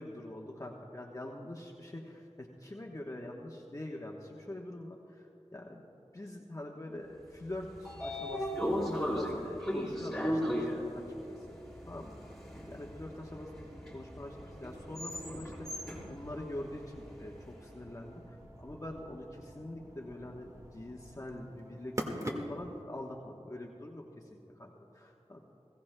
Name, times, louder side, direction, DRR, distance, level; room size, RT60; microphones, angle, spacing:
voice 1, 0.0-5.9 6.1-10.7 10.9-11.6 11.9-12.2 12.7-22.0 22.3-24.3 24.6-25.5, left 1 dB, 30° left, -1 dB, 1.1 m, -44 dB
Train / Sliding door, 7.4-17.6, equal, ahead, 3.7 m, -37 dB
sound 1, 10.0-22.8, equal, 30° right, 1.5 m, -47 dB
20.5 x 16.5 x 2.2 m, 2.8 s
wide cardioid pair, 50°, 11 cm